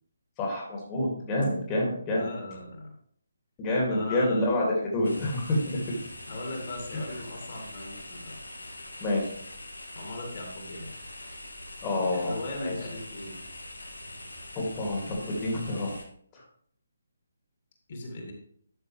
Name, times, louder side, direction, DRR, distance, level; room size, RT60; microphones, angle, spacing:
voice 1, 0.4-2.3 3.6-4.6 4.9-5.8 9.0-9.2 11.8-12.3 12.6-12.7 14.5-15.9, left 1 dB, 20° left, -3 dB, 2.2 m, -27 dB
voice 2, 2.1-2.9 3.9-4.5 6.3-8.4 9.9-10.9 11.9-13.4 17.9-18.3, left 2 dB, 40° left, 1 dB, 2.3 m, -38 dB
sound 1, 5.0-16.0, left 1 dB, 80° left, 1.8 m, -43 dB
12.0 x 6.2 x 3.2 m, 0.63 s
figure-of-eight pair, 145°, 0 cm